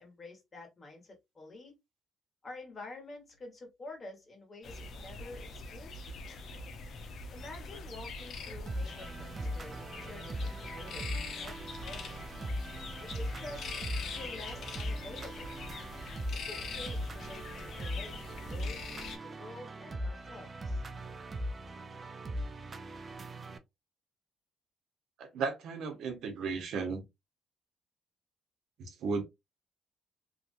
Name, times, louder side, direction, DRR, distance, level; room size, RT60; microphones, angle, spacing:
voice 1, 0.0-1.7 2.4-6.4 7.3-12.2 13.0-15.5 16.5-18.8 19.2-20.8, left 2 dB, 35° left, 1.6 m, -49 dB
sound 1, 4.6-19.2, left 3 dB, 65° left, 0.7 m, -43 dB
sound 2, 8.7-23.6, equal, 35° right, 0.5 m, -40 dB
voice 2, 25.2-27.0 28.8-29.2, right 5 dB, 75° right, 0.9 m, -35 dB
2.9 x 2.5 x 2.6 m
cardioid pair, 90°, 0 cm